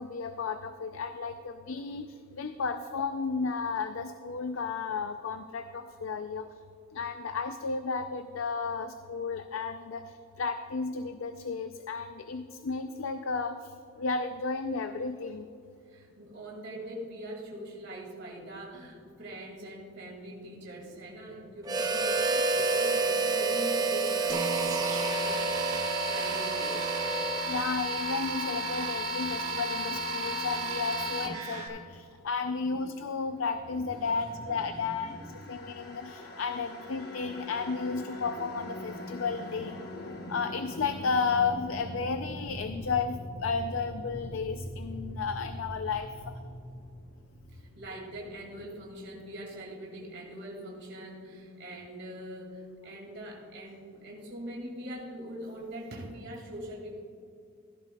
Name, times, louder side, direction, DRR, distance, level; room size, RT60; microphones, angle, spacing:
voice 1, 0.0-6.5 6.9-13.7 14.0-15.5 27.3-35.2 35.5-39.7 40.3-46.1, left 4 dB, 75° left, 9 dB, 0.4 m, -33 dB
voice 2, 15.9-25.4 26.0-26.9 31.8-31.9 32.5-32.8 33.6-35.7 47.5-57.0, right 1 dB, 55° right, -3 dB, 2.2 m, -43 dB
Harmonica, 21.6-27.7, right 3 dB, 20° right, 0.5 m, -29 dB
sound 1, 24.3-31.7, right 1 dB, 70° right, 1.7 m, -33 dB
sound 2, 34.2-49.4, left 1 dB, 45° left, 1.0 m, -42 dB
16.5 x 11.0 x 2.3 m, 2.4 s
head